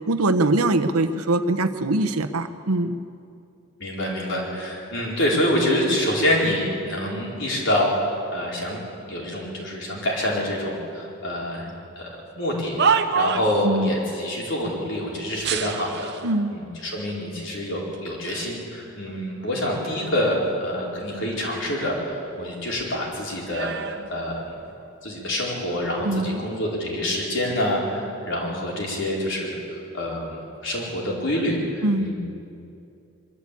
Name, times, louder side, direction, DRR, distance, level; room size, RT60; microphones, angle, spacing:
voice 1, 0.1-2.9 13.6-13.9 16.2-16.5 26.0-26.4 31.8-32.1, right 2 dB, 90° right, 8 dB, 1.1 m, -22 dB
voice 2, 3.8-8.8 9.1-11.7 12.0-12.1 12.3-16.1 16.5-23.7 24.1-24.4 25.0-32.2, left 1 dB, 55° left, -3 dB, 4.6 m, -26 dB
sound 1, 12.4-13.7 15.4-16.3 17.1-17.2 17.9-18.6 19.0-20.5 20.9-22.5 22.8-24.9 25.7-26.0, right 6 dB, 50° right, 0.8 m, -29 dB
23.5 x 13.0 x 8.5 m, 2.6 s
head